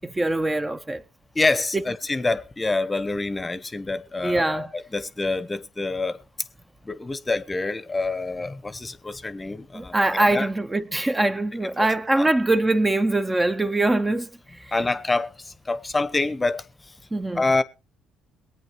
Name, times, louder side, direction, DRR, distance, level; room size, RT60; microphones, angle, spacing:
voice 1, 0.0-1.0 1.7-1.9 4.2-4.7 9.7-14.3 14.6-14.9 17.1-17.5, right 2 dB, 15° right, 0.7 m, -23 dB
voice 2, 1.3-6.2 6.8-10.5 11.8-11.9 12.1-12.3 14.7-16.6 17.3-17.6, left 3 dB, 20° left, 0.8 m, -26 dB
23.0 x 9.1 x 3.0 m
figure-of-eight pair, 50°, 0 cm